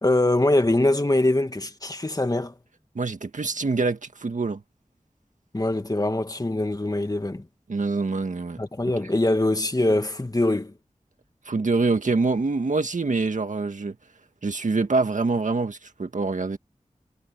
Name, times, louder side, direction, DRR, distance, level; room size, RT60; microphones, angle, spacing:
voice 1, 0.0-2.5 5.5-7.5 8.6-10.7, left 2 dB, 30° left, 2.0 m, -23 dB
voice 2, 3.0-4.6 7.7-8.6 11.5-14.0 14.4-16.6, right 3 dB, 85° right, 1.8 m, -25 dB
wide cardioid pair, 65°, 13 cm